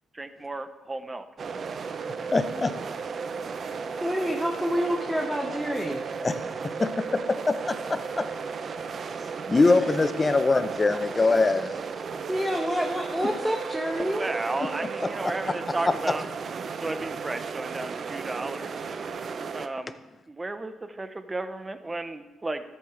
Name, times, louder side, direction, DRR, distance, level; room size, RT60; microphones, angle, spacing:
voice 1, 0.1-1.2 14.0-16.2 16.6-18.7 19.5-20.0 20.3-22.6, right 2 dB, 20° right, 0.8 m, -34 dB
sound 1, 1.4-19.7, right 5 dB, 50° right, 0.6 m, -34 dB
voice 2, 2.3-2.7 6.2-6.3 6.8-7.2 7.5-8.2 9.5-11.8 15.0-15.1, left 3 dB, 25° left, 0.7 m, -23 dB
voice 3, 4.0-6.0 12.3-14.4, equal, 5° right, 1.1 m, -28 dB
13.5 x 8.8 x 3.3 m
cardioid pair, 90°, 0 cm